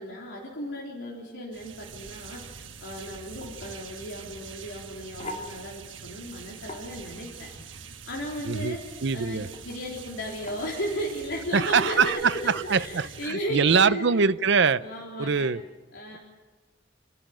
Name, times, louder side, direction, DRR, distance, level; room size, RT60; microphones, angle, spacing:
voice 1, 0.0-8.8 9.1-14.0 14.8-15.5 15.9-16.2, equal, 70° left, -3 dB, 3.7 m, -35 dB
sound 1, 1.5-13.3, right 6 dB, 80° right, 1.3 m, -45 dB
sound 2, 2.8-12.1, left 2 dB, 40° left, 3.3 m, -47 dB
voice 2, 9.0-9.5 11.5-14.8 15.2-15.6, right 5 dB, 65° right, 14 dB, 0.6 m, -23 dB
28.0 x 12.0 x 9.0 m, 1.3 s
head